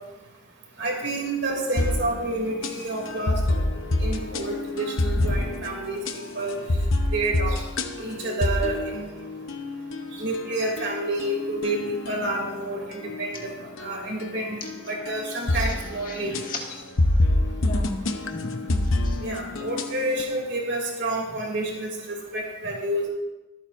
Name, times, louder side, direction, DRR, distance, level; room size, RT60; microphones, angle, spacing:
voice 1, 0.8-3.6 4.0-6.0 6.3-6.6 7.1-7.6 8.0-9.1 10.2-11.8 12.1-13.5 13.8-16.3 19.2-23.1, right 2 dB, 55° right, -1 dB, 3.0 m, -29 dB
sound 1, 1.5-20.2, left 1 dB, 70° left, 0.9 m, -28 dB
voice 2, 16.1-16.9 17.6-18.0 18.3-19.2, left 3 dB, 40° left, 0 dB, 1.9 m, -36 dB
24.5 x 8.9 x 2.7 m, 1.1 s
head